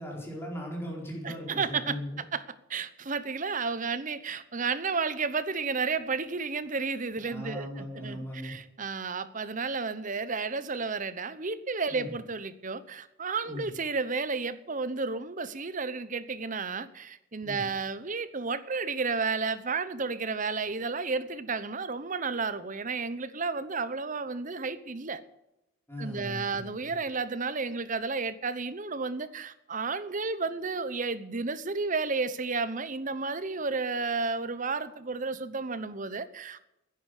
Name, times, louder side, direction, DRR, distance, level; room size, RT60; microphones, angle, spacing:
voice 1, 0.0-2.2 7.2-8.6 11.9-12.1 13.4-13.7 17.4-17.6 25.9-26.6, equal, 10° left, -2 dB, 4.4 m, -38 dB
voice 2, 1.2-2.0 2.3-2.4 2.7-25.2 26.0-36.6, right 4 dB, 40° right, 13 dB, 0.9 m, -32 dB
11.0 x 10.5 x 8.2 m, 0.85 s
head